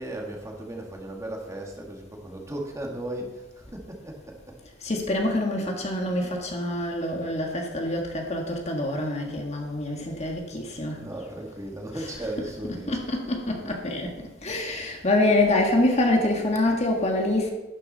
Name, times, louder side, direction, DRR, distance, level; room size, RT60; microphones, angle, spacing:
voice 1, 0.0-4.6 10.2-10.3 10.9-13.0, right 1 dB, 15° right, 0 dB, 1.8 m, -36 dB
voice 2, 4.8-11.0 11.9-14.1 14.4-17.5, left 1 dB, 35° left, 1 dB, 1.7 m, -26 dB
12.0 x 9.8 x 4.1 m, 1.1 s
head